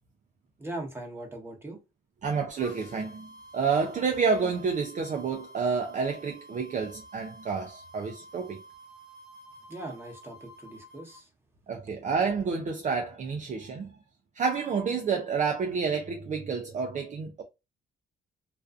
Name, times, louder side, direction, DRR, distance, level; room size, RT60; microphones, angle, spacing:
voice 1, 0.6-1.8 9.7-11.3, right 2 dB, 10° right, 1.0 m, -40 dB
voice 2, 2.2-8.6 11.7-14.0 14.3-17.4, right 5 dB, 40° right, 0.4 m, -29 dB
sound 1, 2.6-11.2, right 1 dB, 55° left, 0.7 m, -50 dB
2.5 x 2.3 x 2.4 m
cardioid pair, 90°, 20 cm